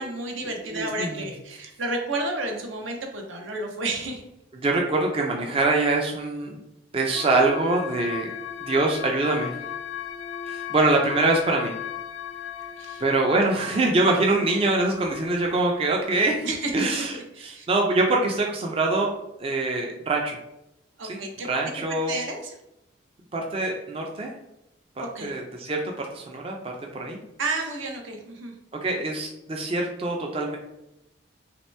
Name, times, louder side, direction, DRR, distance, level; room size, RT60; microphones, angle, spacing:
voice 1, 0.0-4.2 12.8-13.0 16.4-16.7 17.3-17.7 21.0-21.5 21.9-22.5 25.0-25.3 27.4-28.5, right 2 dB, 75° right, 2 dB, 0.7 m, -31 dB
voice 2, 0.6-1.3 4.6-6.6 6.9-8.3 8.7-9.5 10.5-11.7 13.0-16.5 16.7-17.1 17.4-19.1 19.4-20.4 21.1-22.1 23.3-24.3 25.0-27.2 28.8-30.6, right 2 dB, 30° right, 0 dB, 0.4 m, -24 dB
sound 1, 7.1-16.4, left 9 dB, 80° left, 0.4 m, -37 dB
3.0 x 2.9 x 3.2 m, 0.87 s
head